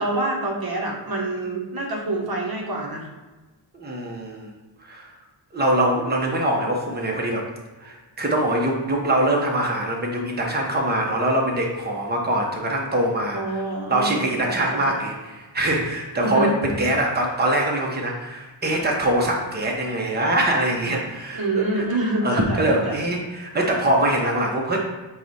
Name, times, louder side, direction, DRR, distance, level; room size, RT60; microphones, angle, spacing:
voice 1, 0.0-3.1 13.3-14.2 14.5-14.8 16.2-16.6 21.3-23.0, right 2 dB, 50° right, -1 dB, 0.9 m, -26 dB
voice 2, 3.8-4.5 4.8-5.1 5.5-7.5 7.8-13.6 13.9-21.5 21.7-21.8 22.2-24.8, right 1 dB, 20° right, -1 dB, 0.9 m, -23 dB
4.7 x 2.4 x 4.0 m, 1.2 s
cardioid pair, 50°, 45 cm